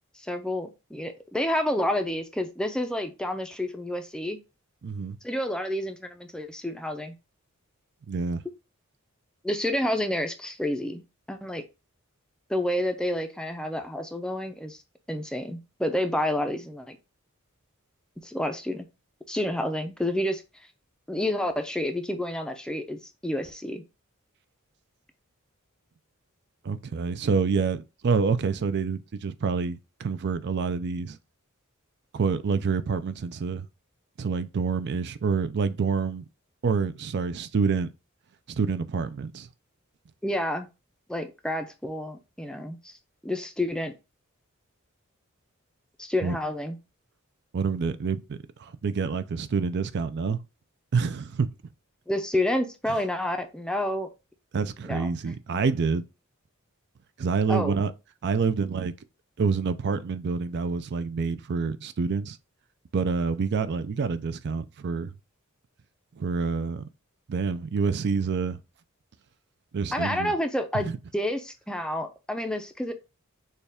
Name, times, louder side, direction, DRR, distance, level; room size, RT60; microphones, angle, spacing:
voice 1, 0.2-4.4 5.2-7.2 9.4-11.0 11.3-11.6 12.5-14.8 15.1-17.0 18.2-18.8 19.3-20.4 21.1-23.8 40.2-40.7 41.1-42.9 43.2-43.9 46.0-46.8 52.1-54.1 54.8-55.4 57.5-57.8 69.9-72.9, left 1 dB, 5° left, 0.5 m, -29 dB
voice 2, 4.8-5.2 8.1-8.4 26.6-31.2 32.1-33.7 34.2-36.2 36.6-37.9 38.5-39.5 46.2-46.4 47.5-50.4 50.9-51.5 52.9-53.0 54.5-56.0 57.2-57.9 58.2-58.9 59.4-62.4 62.9-65.1 66.2-66.8 67.3-68.6 69.7-70.3 70.7-70.8, right 5 dB, 55° right, 0.4 m, -27 dB
6.5 x 2.3 x 3.4 m
head